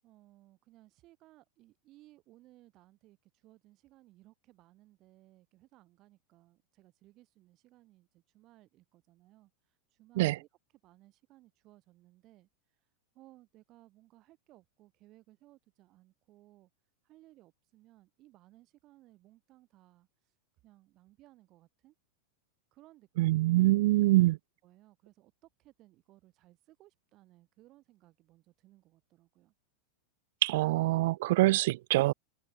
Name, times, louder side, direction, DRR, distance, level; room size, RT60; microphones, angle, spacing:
voice 1, 0.0-10.5 10.8-12.5 13.1-16.7 17.0-20.1 20.6-22.0 22.7-23.7 24.1-24.2 24.6-29.5, right 17 dB, 35° right, 7.3 m, -61 dB
voice 2, 23.2-24.4 30.4-32.1, right 18 dB, 50° right, 0.5 m, -25 dB
figure-of-eight pair, 90°, 0 cm